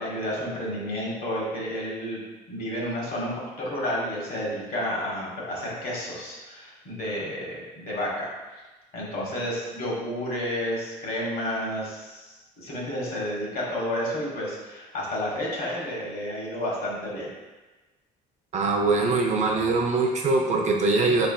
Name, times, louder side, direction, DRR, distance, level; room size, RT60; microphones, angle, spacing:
voice 1, 0.0-2.2 2.5-8.3 8.9-17.3, equal, 60° left, -4 dB, 1.4 m, -31 dB
voice 2, 18.5-21.3, right 3 dB, 45° right, 1 dB, 0.6 m, -22 dB
4.4 x 3.3 x 2.3 m, 1.2 s
cardioid pair, 110°, 17 cm